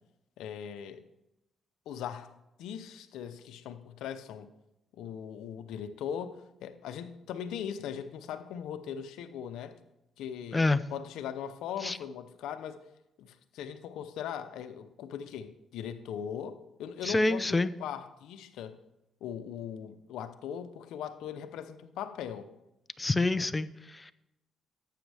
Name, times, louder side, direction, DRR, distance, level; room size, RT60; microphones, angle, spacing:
voice 1, 0.4-1.0 1.9-2.3 2.6-4.5 4.9-9.8 10.2-10.6 10.9-12.9 13.2-18.8 19.2-22.5 23.3-23.5, left 8 dB, 85° left, 0.7 m, -40 dB
voice 2, 17.0-17.7 23.0-24.1, left 2 dB, 20° left, 0.5 m, -27 dB
11.5 x 8.3 x 3.5 m
cardioid pair, 80°, 0 cm